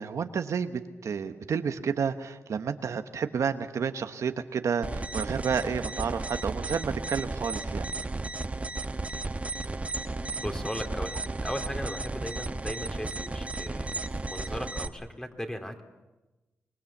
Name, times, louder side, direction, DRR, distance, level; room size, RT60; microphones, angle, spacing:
voice 1, 0.0-7.9, right 6 dB, 80° right, 8 dB, 1.1 m, -30 dB
sound 1, 4.8-14.9, right 2 dB, 25° right, 1.1 m, -34 dB
voice 2, 10.0-14.0 14.3-15.8, equal, 10° left, 5 dB, 2.9 m, -37 dB
25.0 x 20.5 x 7.3 m, 1.1 s
cardioid pair, 70°, 5 cm